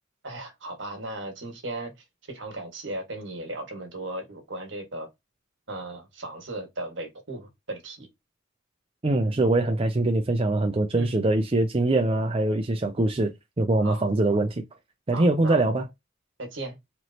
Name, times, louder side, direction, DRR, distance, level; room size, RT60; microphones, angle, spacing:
voice 1, 0.2-1.9 2.3-5.1 5.7-8.1 11.0-11.2 13.8-14.1 15.1-15.7 16.4-16.8, right 1 dB, 65° right, 1.7 m, -36 dB
voice 2, 9.0-14.6 15.1-15.9, right 2 dB, 30° right, 0.5 m, -23 dB
4.5 x 3.1 x 2.8 m
head